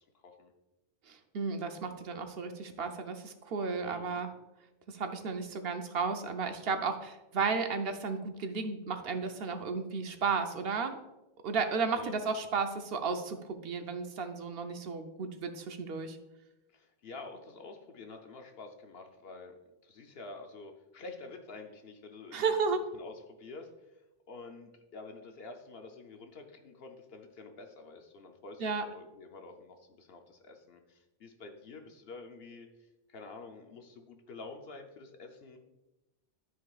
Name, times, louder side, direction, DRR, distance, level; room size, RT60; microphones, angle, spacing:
voice 1, 1.1-4.3 4.9-11.0 11.4-16.2 22.3-22.8 28.6-28.8, right 5 dB, 65° right, 7 dB, 0.9 m, -33 dB
voice 2, 3.8-4.2 11.9-12.2 16.7-19.5 19.8-22.4 22.9-35.6, left 3 dB, 65° left, 4 dB, 0.9 m, -48 dB
13.0 x 4.8 x 2.4 m, 1.0 s
omnidirectional pair, 1.1 m